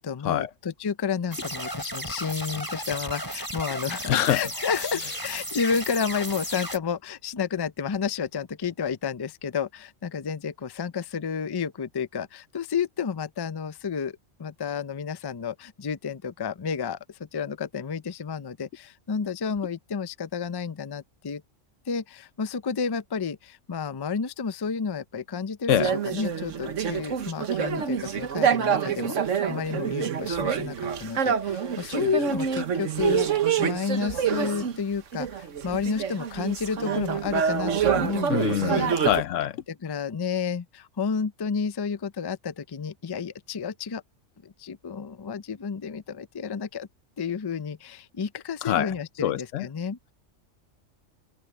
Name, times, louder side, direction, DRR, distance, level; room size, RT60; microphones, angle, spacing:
voice 1, 0.0-21.4 21.9-33.3 33.6-38.9 39.7-44.0 44.4-46.9 47.2-50.1, left 6 dB, 30° left, 0.4 m, -31 dB
sound 1, 1.3-6.8, right 1 dB, 15° right, 5.7 m, -34 dB
voice 2, 4.1-4.4 25.7-25.9 38.3-39.6 48.6-48.9 49.2-49.7, left 12 dB, 80° left, 1.0 m, -25 dB
sound 2, 25.7-34.8 35.1-39.2, right 7 dB, 85° right, 1.5 m, -27 dB
omnidirectional pair, 1.3 m